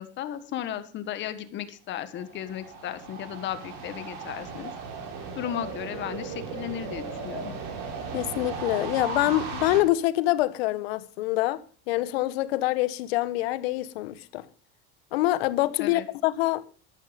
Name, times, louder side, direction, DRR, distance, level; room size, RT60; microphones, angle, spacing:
voice 1, 0.0-4.7 5.3-7.5 15.8-16.1, left 11 dB, 40° left, 1.5 m, -35 dB
sound 1, 2.1-9.8, right 5 dB, 65° right, 5.8 m, -36 dB
voice 2, 8.1-11.6 11.9-14.4 15.1-16.6, left 16 dB, 85° left, 1.3 m, -25 dB
13.5 x 12.0 x 5.2 m
cardioid pair, 150°, 30 cm